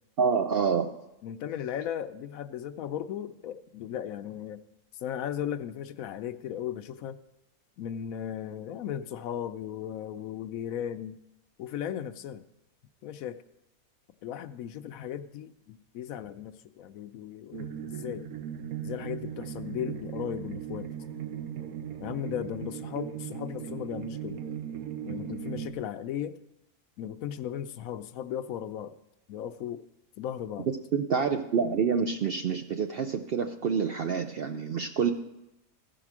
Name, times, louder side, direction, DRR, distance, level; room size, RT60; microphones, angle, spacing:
voice 1, 0.2-1.0 30.9-35.1, right 6 dB, 65° right, 6 dB, 0.6 m, -27 dB
voice 2, 1.2-4.6 4.9-7.2 7.8-11.2 11.6-12.4 13.0-13.4 14.2-18.3 18.8-20.9 22.0-24.4 25.0-26.4 27.0-28.9 29.3-29.8 30.2-30.7, left 10 dB, 75° left, 11 dB, 1.0 m, -36 dB
sound 1, 17.5-25.7, right 8 dB, 80° right, 1.2 m, -38 dB
15.0 x 5.0 x 6.0 m, 0.90 s
omnidirectional pair, 1.5 m